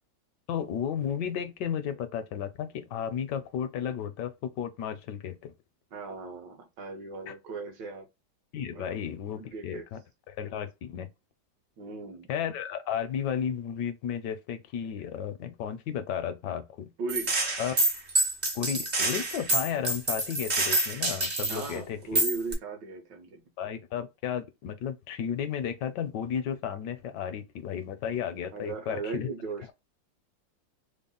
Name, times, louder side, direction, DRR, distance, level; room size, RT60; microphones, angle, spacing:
voice 1, 0.5-5.5 7.3-7.4 8.5-10.0 10.3-11.1 12.3-16.9 17.6-17.8 18.5-22.2 23.6-29.3, left 8 dB, 75° left, 1.1 m, -33 dB
voice 2, 5.9-8.1 8.7-9.0 9.3-9.8 11.8-12.3 17.0-17.4 21.5-23.4 28.5-29.7, right 4 dB, 70° right, 1.6 m, -37 dB
Gunshot gunfire, 17.1-21.7 22.1-22.5, right 2 dB, 45° right, 0.5 m, -27 dB
3.6 x 2.1 x 3.7 m
omnidirectional pair, 2.1 m